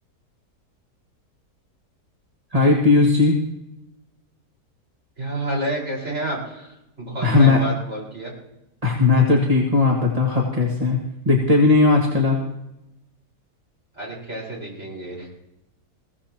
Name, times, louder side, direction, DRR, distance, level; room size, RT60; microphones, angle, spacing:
voice 1, 2.5-3.3 7.2-7.6 8.8-11.0 11.3-12.4, left 3 dB, 25° right, -2 dB, 2.0 m, -17 dB
voice 2, 5.2-8.3 13.9-15.3, right 1 dB, 45° right, -4 dB, 5.4 m, -30 dB
21.5 x 17.0 x 3.0 m, 0.89 s
omnidirectional pair, 1.7 m